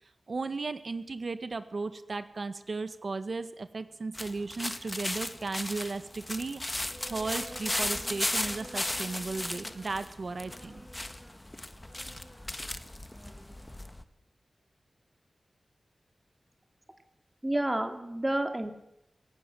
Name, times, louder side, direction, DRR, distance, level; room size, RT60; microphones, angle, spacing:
voice 1, 0.3-6.7 7.1-10.8, right 3 dB, 60° right, 11 dB, 1.7 m, -35 dB
sound 1, 4.1-14.0, left 1 dB, 20° left, 1.6 m, -36 dB
Insect, 6.7-13.9, equal, ahead, 3.8 m, -52 dB
voice 2, 17.4-18.7, right 1 dB, 20° right, 6 dB, 2.6 m, -29 dB
20.5 x 18.0 x 7.8 m, 0.81 s
wide cardioid pair, 95°, 0 cm